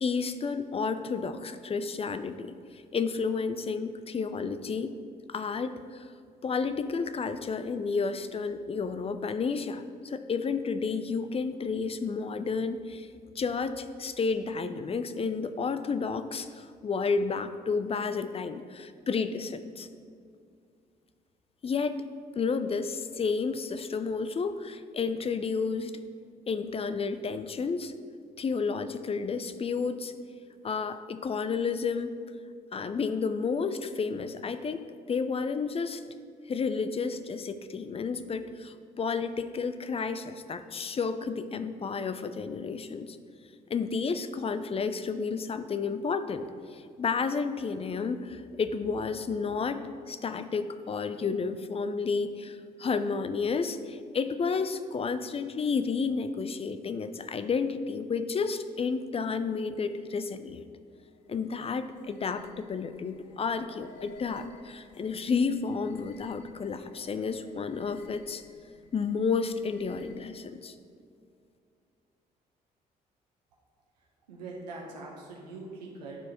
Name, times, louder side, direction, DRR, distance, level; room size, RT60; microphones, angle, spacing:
voice 1, 0.0-5.0 5.3-6.1 6.4-13.1 13.4-19.9 21.6-22.0 22.4-26.0 26.5-27.9 28.4-30.1 30.6-32.1 32.7-34.8 35.1-36.0 36.5-43.2 43.7-60.7 61.3-68.4 68.9-70.7, left 5 dB, 30° left, 11 dB, 0.5 m, -31 dB
sound 1, 60.9-70.6, left 3 dB, 65° left, 0.8 m, -55 dB
voice 2, 74.3-76.2, right 3 dB, 90° right, -2 dB, 0.9 m, -42 dB
11.0 x 4.7 x 3.0 m, 2.2 s
hypercardioid pair, 45°, 20 cm